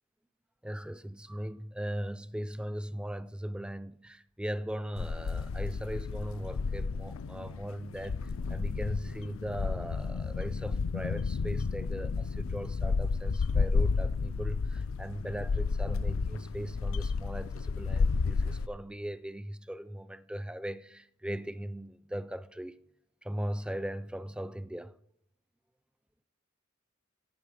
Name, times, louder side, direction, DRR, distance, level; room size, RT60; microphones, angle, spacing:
voice 1, 0.6-22.8 23.2-24.9, equal, 5° right, 0.3 m, -39 dB
sound 1, 5.0-18.7, left 4 dB, 80° left, 0.4 m, -31 dB
16.0 x 6.0 x 5.0 m
head